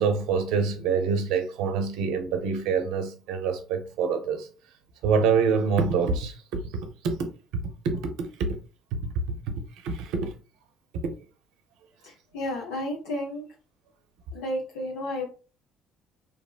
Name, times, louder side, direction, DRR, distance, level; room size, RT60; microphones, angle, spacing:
voice 1, 0.0-4.5 5.0-7.3 7.8-8.6 8.9-9.4 9.8-10.3 11.0-11.1, right 5 dB, 80° right, 0.5 m, -26 dB
voice 2, 12.0-13.5 14.3-15.3, left 1 dB, 85° left, 0.6 m, -32 dB
2.7 x 2.1 x 2.3 m
supercardioid pair, 75°, 0 cm